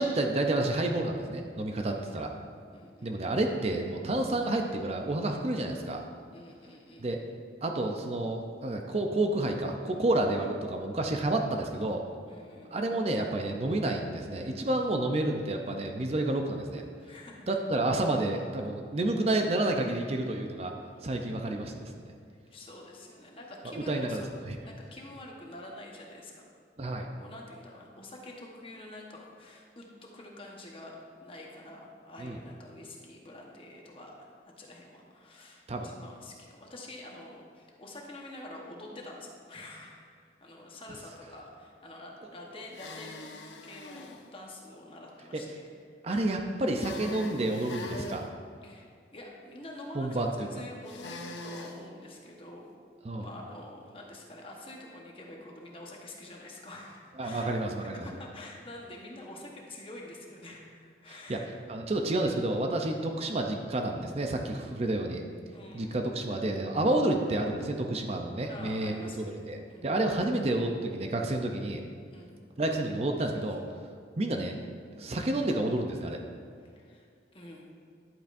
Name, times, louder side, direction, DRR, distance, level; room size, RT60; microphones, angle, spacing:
voice 1, 0.0-2.3 3.0-6.0 7.0-7.2 7.6-12.0 12.7-16.8 17.5-20.7 21.0-21.9 23.7-24.6 26.8-27.1 32.2-32.4 35.7-35.9 45.3-45.4 46.0-48.3 49.9-50.5 53.0-53.3 57.2-58.1 61.1-61.4 61.7-65.2 65.7-71.8 72.6-73.6 74.2-74.5 75.0-76.2, right 2 dB, 35° right, 3 dB, 0.5 m, -30 dB
voice 2, 2.7-3.1 6.3-7.1 12.3-12.8 17.0-17.6 20.9-21.6 22.5-24.3 24.6-26.4 27.2-43.3 43.6-46.0 48.6-48.8 49.1-52.7 53.2-57.5 57.8-61.5 65.5-66.0 68.5-69.9 72.1-72.4 76.6-77.1 77.3-77.7, left 1 dB, 30° left, -1 dB, 1.1 m, -47 dB
sound 1, 42.7-44.2 46.7-48.2 50.9-51.8, left 3 dB, 90° left, 0.8 m, -42 dB
10.5 x 8.7 x 2.6 m, 2.2 s
head